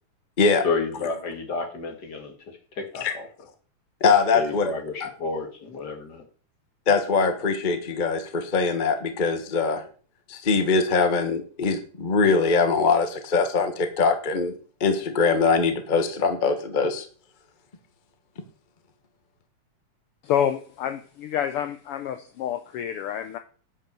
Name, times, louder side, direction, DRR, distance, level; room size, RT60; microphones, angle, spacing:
voice 1, 0.6-3.3 4.3-6.2, left 4 dB, 35° left, 4 dB, 2.4 m, -31 dB
voice 2, 4.0-4.7 5.0-5.1 6.9-9.8 10.3-14.5 14.8-17.0, left 4 dB, 55° left, 8 dB, 0.5 m, -22 dB
voice 3, 20.2-23.4, left 9 dB, 75° left, 9 dB, 1.3 m, -28 dB
10.0 x 6.4 x 6.8 m, 0.41 s
omnidirectional pair, 3.3 m